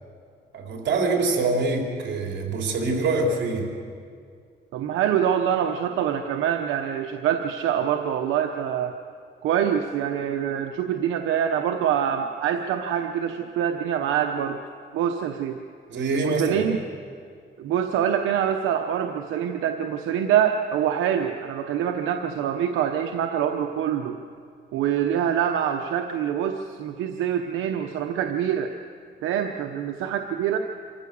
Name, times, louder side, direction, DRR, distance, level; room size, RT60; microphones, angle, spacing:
voice 1, 0.5-3.7 15.9-16.6, right 3 dB, 65° right, 0 dB, 4.2 m, -25 dB
voice 2, 4.7-8.9 9.4-14.6 14.9-15.6 16.1-16.8 17.6-24.2 24.7-28.7 29.2-30.6, right 9 dB, 90° right, 5 dB, 1.0 m, -25 dB
26.5 x 14.5 x 7.0 m, 2.2 s
cardioid pair, 90°, 20 cm